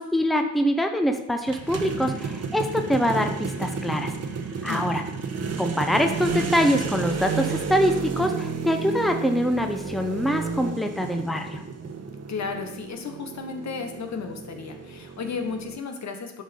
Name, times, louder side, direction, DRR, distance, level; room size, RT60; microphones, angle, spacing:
voice 1, 0.0-4.1 4.6-5.0 5.6-11.6, equal, ahead, 5 dB, 0.9 m, -24 dB
sound 1, 1.5-15.8, right 5 dB, 50° right, 1.3 m, -32 dB
voice 2, 4.7-5.1 12.3-16.4, left 5 dB, 60° left, 5 dB, 1.4 m, -34 dB
10.0 x 5.1 x 5.3 m, 0.86 s
cardioid pair, 85°, 32 cm